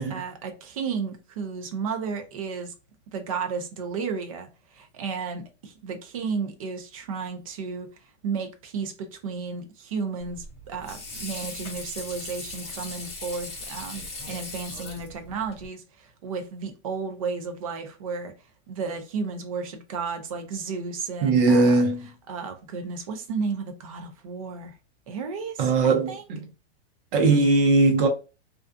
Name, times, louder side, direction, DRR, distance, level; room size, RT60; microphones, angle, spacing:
voice 1, 0.0-2.7 3.1-7.9 8.2-18.3 18.7-21.8 22.3-24.8 25.1-26.3, right 5 dB, 30° right, 0.4 m, -33 dB
Water / Sink (filling or washing), 10.2-15.7, left 2 dB, 20° left, 0.9 m, -39 dB
voice 2, 21.2-22.0 25.6-26.4 27.1-28.1, right 3 dB, 50° right, 0.8 m, -20 dB
2.4 x 2.2 x 2.4 m
supercardioid pair, 165°, 34 cm